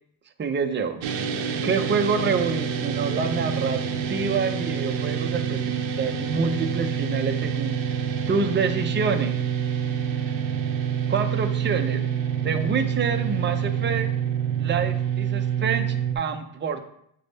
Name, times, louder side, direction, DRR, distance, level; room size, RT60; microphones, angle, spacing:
voice 1, 0.4-1.0 1.6-3.8 4.1-8.0 8.3-9.4 11.1-12.1 12.4-14.1 14.6-16.8, right 5 dB, 25° right, 5 dB, 0.6 m, -27 dB
sound 1, 1.0-16.1, right 8 dB, 65° right, 0.8 m, -27 dB
7.5 x 3.5 x 4.0 m, 0.71 s
cardioid pair, 110°, 49 cm